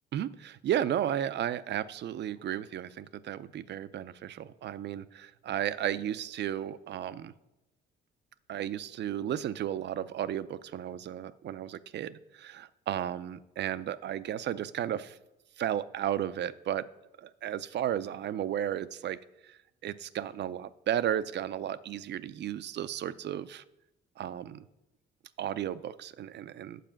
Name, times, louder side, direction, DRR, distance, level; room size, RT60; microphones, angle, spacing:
voice 1, 0.1-7.3 8.5-15.2 15.6-16.9 17.2-19.2 19.4-23.6 24.2-24.6 25.4-26.8, right 10 dB, 60° right, 15 dB, 0.5 m, -34 dB
9.2 x 4.8 x 7.5 m, 0.94 s
cardioid pair, 90°, 20 cm